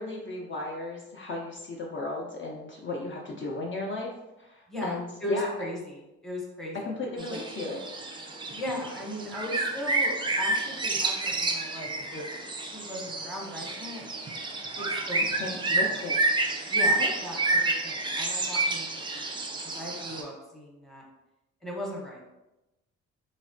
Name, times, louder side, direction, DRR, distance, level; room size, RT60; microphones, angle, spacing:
voice 1, 0.0-4.1 4.4-5.7 6.7-7.8 15.4-16.2 17.0-17.1, left 2 dB, 40° left, -2 dB, 0.5 m, -35 dB
voice 2, 4.7-6.8 7.2-7.4 8.5-12.3 12.7-14.0 14.8-15.5 15.8-16.0 16.7-18.9 19.1-21.0 21.6-22.2, left 1 dB, ahead, -3 dB, 0.8 m, -37 dB
sound 1, 7.2-20.2, right 2 dB, 15° right, 0.3 m, -29 dB
3.3 x 2.1 x 2.5 m, 0.97 s
cardioid pair, 90°, 30 cm